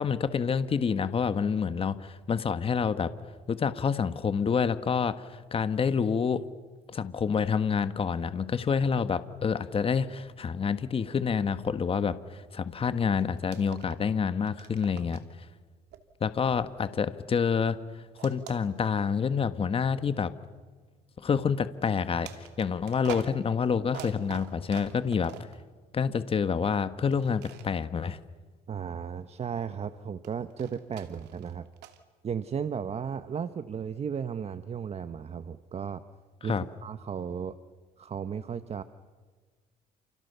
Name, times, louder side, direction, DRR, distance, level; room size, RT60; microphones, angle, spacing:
voice 1, 0.0-3.1 3.5-6.4 6.9-15.2 16.2-17.8 18.2-20.3 21.2-22.3 22.6-25.3 25.9-28.2 36.5-36.6, left 6 dB, 35° left, 11 dB, 1.5 m, -28 dB
sound 1, 13.4-14.2 14.4-15.4 15.9-17.4 18.2-19.2 19.9-20.0 22.2-25.6 27.1-27.7 30.2-32.0, right 11 dB, 85° right, 2.8 m, -46 dB
voice 2, 28.7-31.7 32.2-36.0 36.4-37.5 38.0-38.8, right 7 dB, 40° right, 11 dB, 1.2 m, -35 dB
30.0 x 29.0 x 6.9 m, 1.4 s
cardioid pair, 110°, 17 cm